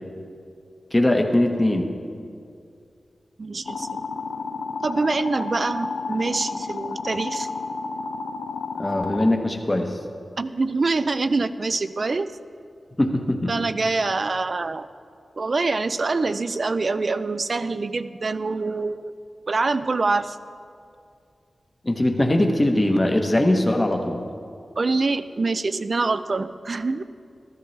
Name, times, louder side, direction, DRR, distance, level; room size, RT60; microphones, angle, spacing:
voice 1, 0.9-1.9 8.8-9.9 13.0-13.5 21.8-24.2, left 1 dB, 25° left, 3 dB, 1.2 m, -21 dB
voice 2, 3.4-4.0 4.8-7.5 10.4-12.3 13.5-14.9 15.4-19.1 19.5-20.4 24.8-27.0, right 3 dB, 55° right, 13 dB, 0.4 m, -25 dB
sound 1, 3.7-9.3, left 4 dB, 80° left, 0.6 m, -31 dB
13.5 x 13.0 x 3.3 m, 2.3 s
cardioid pair, 65°, 0 cm